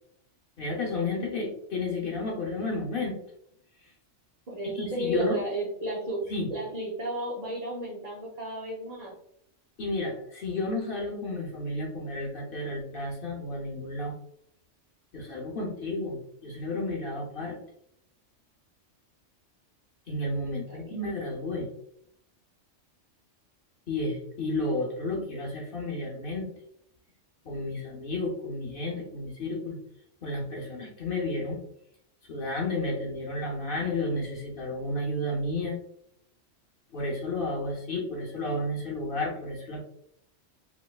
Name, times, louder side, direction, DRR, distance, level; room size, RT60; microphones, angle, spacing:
voice 1, 0.6-3.2 4.7-5.4 6.3-6.5 9.8-14.1 15.1-17.6 20.1-21.7 23.9-26.5 27.4-29.8 30.2-31.6 32.3-35.8 36.9-39.8, left 2 dB, 50° left, -2 dB, 0.8 m, -32 dB
voice 2, 4.5-6.2 6.5-9.2 20.7-21.0, right 1 dB, 45° right, -5 dB, 0.5 m, -33 dB
3.1 x 3.0 x 2.3 m, 0.71 s
omnidirectional pair, 1.3 m